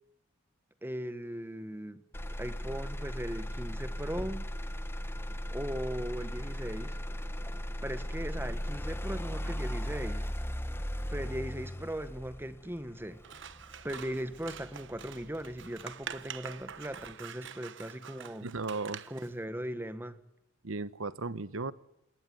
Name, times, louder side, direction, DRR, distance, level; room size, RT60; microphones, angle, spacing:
voice 1, 0.8-2.0 2.4-4.5 5.5-7.0 7.8-10.3 11.1-13.2 13.8-18.5 19.1-20.2, right 1 dB, 10° right, 1.5 m, -38 dB
Motor vehicle (road), 2.1-16.1 16.6-17.1, equal, 10° left, 1.2 m, -37 dB
Scissors, 13.2-19.3, right 8 dB, 65° right, 1.1 m, -46 dB
voice 2, 18.4-19.0 20.6-21.7, right 3 dB, 90° right, 1.1 m, -35 dB
27.5 x 19.0 x 9.5 m
head